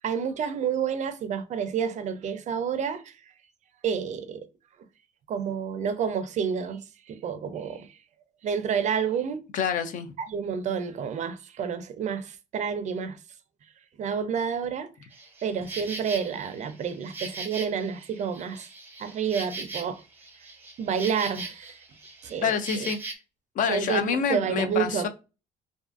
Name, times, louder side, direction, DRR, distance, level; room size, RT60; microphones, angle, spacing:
voice 1, 0.0-3.1 3.8-4.5 5.3-7.9 8.4-9.4 10.2-13.2 14.0-14.9 15.4-18.7 19.0-20.0 20.8-21.7 22.2-22.9 23.7-25.1, right 7 dB, 45° right, 0.4 m, -29 dB
voice 2, 9.5-10.1 22.4-23.1 23.6-25.1, left 7 dB, 50° left, 0.4 m, -27 dB
Insect, 15.1-23.1, right 3 dB, 10° right, 0.7 m, -40 dB
2.5 x 2.4 x 2.3 m
cardioid pair, 110°, 17 cm